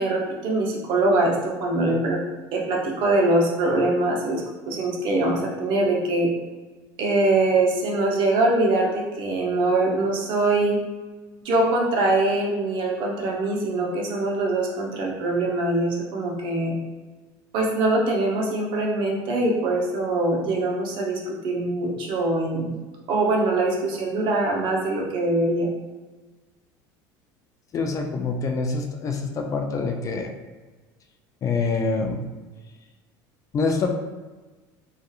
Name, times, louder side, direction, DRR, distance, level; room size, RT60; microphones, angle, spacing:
voice 1, 0.0-2.2 2.5-6.3 7.0-10.8 11.4-16.7 17.5-22.7 23.1-25.7, right 2 dB, 55° right, -1 dB, 0.7 m, -23 dB
voice 2, 27.7-30.3 31.4-32.2 33.5-33.9, left 4 dB, 35° left, 3 dB, 0.3 m, -25 dB
2.7 x 2.4 x 2.3 m, 1.3 s
supercardioid pair, 105°, 10 cm